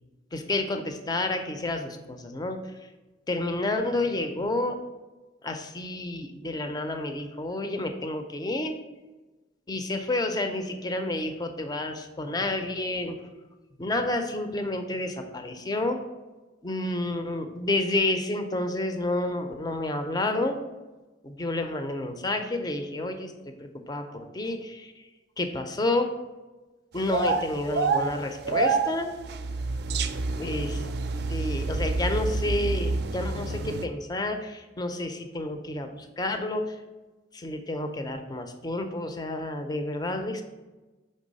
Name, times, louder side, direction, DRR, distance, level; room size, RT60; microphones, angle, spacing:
voice 1, 0.3-2.6 3.3-4.8 5.4-8.8 9.7-13.2 13.8-16.0 16.6-20.6 21.2-24.9 25.4-26.1 26.9-29.1 30.4-30.8 31.3-36.8 37.3-40.4, left 2 dB, 20° left, 6 dB, 0.5 m, -30 dB
sound 1, 27.0-33.9, right 3 dB, 55° right, 0.4 m, -28 dB
5.4 x 3.4 x 5.2 m, 1.2 s
head